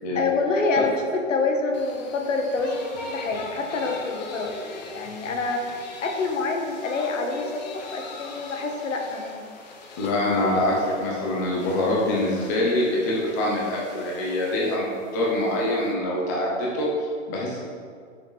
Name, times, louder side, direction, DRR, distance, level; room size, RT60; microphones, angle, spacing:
voice 1, 0.1-4.5 4.9-9.6, left 3 dB, 75° left, 2 dB, 1.6 m, -27 dB
sound 1, 1.7-15.9, left 3 dB, 35° left, 0.9 m, -41 dB
voice 2, 10.0-17.6, left 1 dB, 15° left, -4 dB, 0.6 m, -25 dB
8.4 x 6.5 x 4.0 m, 2.1 s
hypercardioid pair, 175°, 38 cm